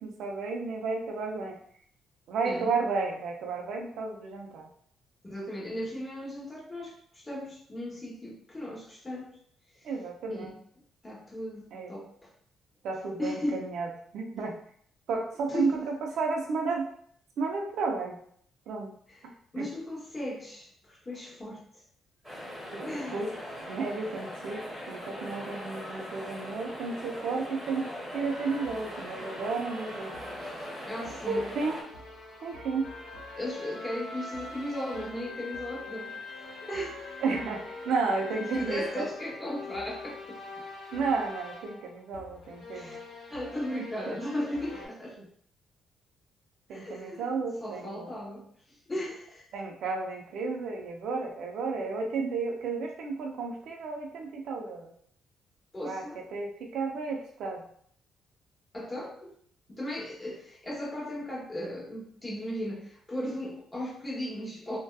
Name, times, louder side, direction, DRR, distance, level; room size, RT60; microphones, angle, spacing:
voice 1, 0.0-1.6 2.3-4.7 9.8-10.5 11.7-11.9 12.8-14.5 15.1-16.9 17.4-18.2 18.7-18.9 19.6-19.7 22.7-23.3 23.6-27.8 28.1-30.1 31.3-31.8 32.4-32.9 37.2-39.1 40.9-43.0 43.8-44.2 45.2-45.3 46.7-48.1 49.5-54.9 55.8-56.0 56.3-57.7, right 4 dB, 75° right, 1 dB, 0.5 m, -32 dB
voice 2, 5.2-9.3 9.7-9.9 10.3-10.5 11.0-12.3 13.2-13.6 15.5-15.8 19.1-19.2 19.5-21.6 22.8-23.2 30.9-31.4 33.4-36.1 36.6-37.1 38.5-40.4 42.7-43.0 43.3-45.2 46.7-47.3 47.6-48.5 48.9-49.5 55.7-56.2 58.7-59.3 59.7-64.8, left 1 dB, 20° left, -4 dB, 0.9 m, -36 dB
sound 1, 22.2-31.8, equal, 5° right, 1.2 m, -40 dB
sound 2, 28.3-44.9, left 2 dB, 70° left, 0.8 m, -44 dB
2.7 x 2.2 x 2.2 m, 0.62 s
cardioid pair, 90°, 0 cm